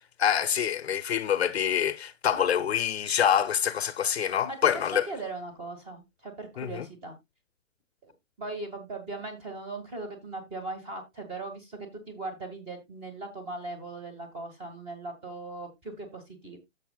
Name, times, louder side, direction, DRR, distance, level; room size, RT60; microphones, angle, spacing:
voice 1, 0.2-5.1 6.6-6.9, left 9 dB, 50° left, 0.8 m, -26 dB
voice 2, 4.9-7.1 8.0-8.1 8.4-16.6, right 2 dB, 15° right, 1.9 m, -39 dB
13.0 x 6.8 x 2.3 m
hypercardioid pair, 165°, 40 cm